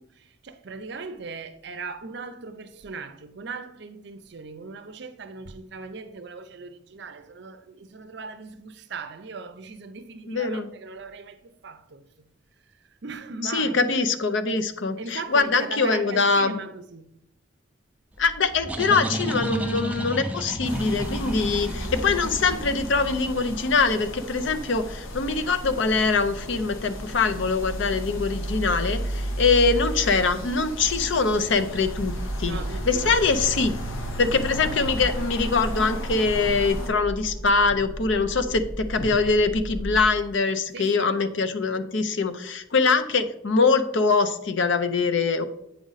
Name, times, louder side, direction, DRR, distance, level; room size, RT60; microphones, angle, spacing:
voice 1, 0.0-12.3 13.0-13.9 15.0-17.1 32.4-33.2 40.7-41.1, right 4 dB, 55° right, 0.5 m, -39 dB
voice 2, 10.3-10.7 13.4-16.6 18.2-32.6 32.8-33.7 34.2-45.4, left 4 dB, 65° left, 0.6 m, -23 dB
sound 1, 18.2-23.7, equal, 5° right, 0.5 m, -32 dB
sound 2, 20.7-36.9, equal, 80° left, 1.1 m, -33 dB
sound 3, 31.7-40.1, equal, 40° left, 0.8 m, -35 dB
8.3 x 5.1 x 4.0 m
head